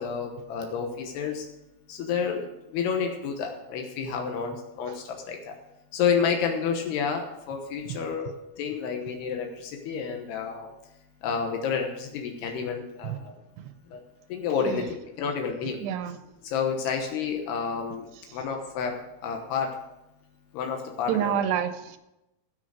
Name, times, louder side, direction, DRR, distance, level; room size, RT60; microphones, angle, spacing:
voice 1, 0.0-1.4 1.9-2.5 2.7-5.5 5.9-8.3 8.6-10.7 11.2-13.4 13.9-14.0 14.3-15.8 16.4-18.1 18.3-18.9 19.2-19.7 20.5-21.4, left 6 dB, 80° left, 3 dB, 3.2 m, -29 dB
voice 2, 15.8-16.2 18.3-18.4 21.1-22.0, right 9 dB, 85° right, 10 dB, 3.0 m, -29 dB
15.5 x 6.5 x 6.4 m, 0.93 s
omnidirectional pair, 4.8 m